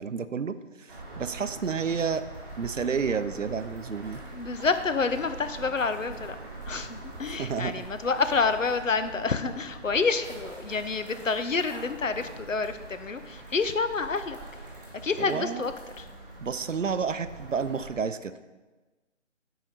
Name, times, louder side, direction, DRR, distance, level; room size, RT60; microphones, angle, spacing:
voice 1, 0.0-2.2 2.6-4.2 7.4-7.9 15.2-15.6 16.4-18.3, right 6 dB, 80° right, 12 dB, 0.6 m, -30 dB
sound 1, 0.9-17.9, right 2 dB, 15° right, 1.2 m, -43 dB
voice 2, 4.3-6.4 6.7-14.4 15.0-15.7 16.0-16.1, left 4 dB, 85° left, 10 dB, 0.7 m, -28 dB
9.2 x 5.0 x 4.0 m, 1.2 s
figure-of-eight pair, 155°, 38 cm